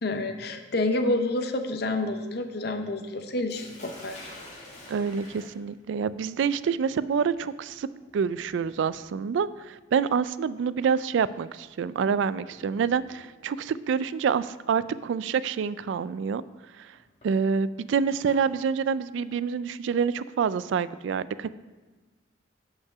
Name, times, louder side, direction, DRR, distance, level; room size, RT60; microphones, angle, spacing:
voice 1, 0.0-4.2, left 2 dB, 55° left, 6 dB, 0.7 m, -28 dB
Sink (filling or washing), 3.5-13.4 14.5-14.9 15.4-15.5 16.9-18.4, left 1 dB, 35° left, 1.9 m, -50 dB
voice 2, 4.9-16.4 16.8-16.9 17.2-21.5, right 6 dB, 70° right, 16 dB, 0.3 m, -27 dB
6.7 x 5.7 x 6.6 m, 1.2 s
head